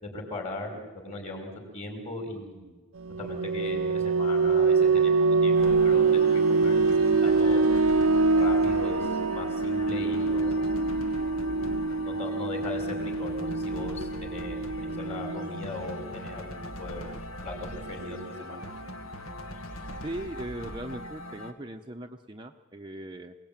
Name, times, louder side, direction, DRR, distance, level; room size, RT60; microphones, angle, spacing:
voice 1, 0.0-2.8 3.2-5.1 5.4-6.9 7.2-7.6 8.3-10.7 12.0-17.1 17.4-18.6, left 2 dB, 30° left, 3 dB, 5.4 m, -38 dB
sound 1, 3.0-15.5, right 4 dB, 70° right, 0.7 m, -24 dB
sound 2, 5.5-21.5, right 1 dB, 75° left, 2.1 m, -39 dB
voice 2, 20.0-23.4, right 1 dB, 20° right, 3 dB, 0.8 m, -39 dB
27.5 x 19.0 x 9.0 m, 1.3 s
head